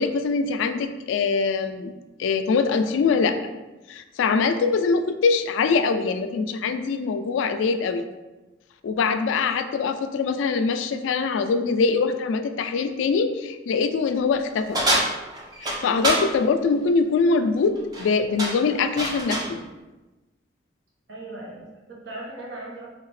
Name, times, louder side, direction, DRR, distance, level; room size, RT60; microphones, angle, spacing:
voice 1, 0.0-1.9 2.2-3.4 3.9-8.0 8.8-14.8 15.6-19.6, left 4 dB, 80° left, 9 dB, 0.3 m, -23 dB
sound 1, 14.7-16.3 17.8-18.1 18.4-19.5, right 1 dB, 20° right, 0.5 m, -25 dB
voice 2, 21.1-22.9, right 2 dB, 65° right, -4 dB, 0.9 m, -38 dB
3.1 x 2.8 x 3.1 m, 1.1 s
head